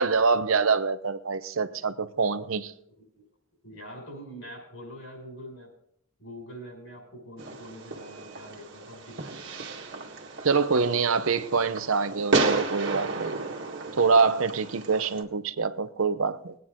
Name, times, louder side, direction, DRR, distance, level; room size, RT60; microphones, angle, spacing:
voice 1, 0.0-2.7 10.4-13.4 14.0-16.5, right 4 dB, 85° right, 0.8 m, -25 dB
voice 2, 3.6-5.7 6.2-9.6 10.7-11.0, equal, 70° left, 5.8 m, -44 dB
Fireworks, 7.4-15.2, right 3 dB, 60° right, 1.8 m, -32 dB
21.0 x 9.3 x 3.8 m
head